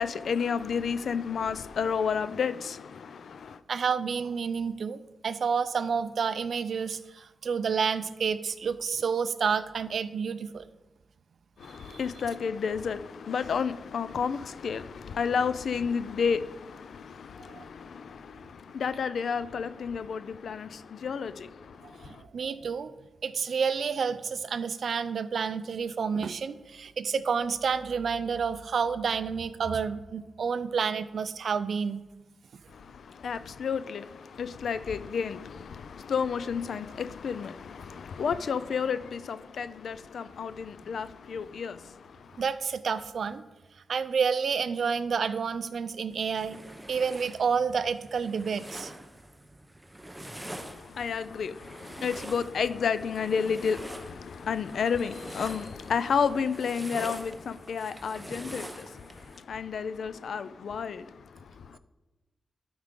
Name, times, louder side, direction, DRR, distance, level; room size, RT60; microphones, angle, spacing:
voice 1, 0.0-3.6 11.6-22.2 32.7-42.4 50.2-61.8, left 6 dB, 75° left, 0.4 m, -31 dB
voice 2, 3.7-10.7 11.8-12.0 17.5-17.6 22.0-22.9 23.2-32.0 42.4-43.4 43.9-46.6 46.9-48.9, right 6 dB, 65° right, 0.4 m, -29 dB
sound 1, 46.1-59.4, right 1 dB, 5° right, 0.7 m, -45 dB
12.5 x 4.8 x 3.7 m
wide cardioid pair, 100°, 0 cm